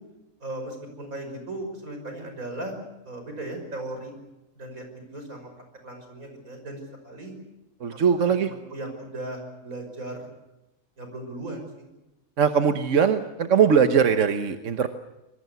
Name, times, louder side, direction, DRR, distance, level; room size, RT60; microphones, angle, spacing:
voice 1, 0.4-2.7 3.1-4.1 4.6-5.5 5.8-7.3 7.9-10.3 11.0-11.9, right 1 dB, 85° right, 5 dB, 6.3 m, -37 dB
voice 2, 7.8-8.5 12.4-14.9, right 7 dB, 65° right, 8 dB, 1.4 m, -21 dB
26.0 x 21.0 x 8.2 m, 0.98 s
omnidirectional pair, 1.4 m